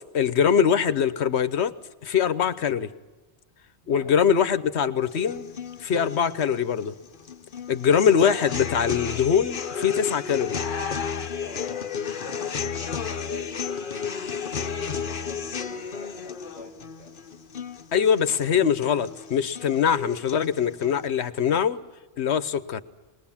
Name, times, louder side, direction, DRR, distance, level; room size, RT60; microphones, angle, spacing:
voice 1, 0.1-1.7 2.0-2.9 3.9-5.5 5.8-6.9 7.7-10.6 17.9-21.8 22.2-22.8, left 7 dB, 75° left, 1.1 m, -23 dB
voice 2, 3.8-4.2 11.3-17.1, equal, 45° right, 6.3 m, -47 dB
sound 1, 5.1-21.1, left 6 dB, 50° left, 1.0 m, -33 dB
21.0 x 21.0 x 7.2 m
omnidirectional pair, 1.1 m